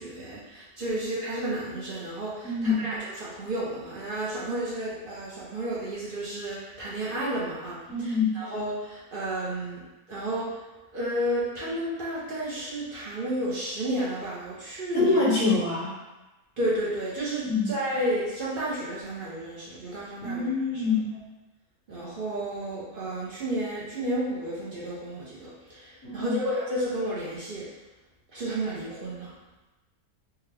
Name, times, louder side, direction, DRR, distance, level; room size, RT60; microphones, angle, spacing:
voice 1, 0.0-9.8 10.1-10.6 10.9-15.2 16.6-20.8 21.9-27.7 28.3-29.3, right 1 dB, 50° right, -7 dB, 0.7 m, -32 dB
voice 2, 2.4-2.9 7.9-8.4 15.0-15.9 17.4-17.7 20.2-21.1 26.0-26.4, left 3 dB, 65° left, -7 dB, 1.5 m, -25 dB
3.4 x 2.3 x 3.3 m, 1.1 s
omnidirectional pair, 1.6 m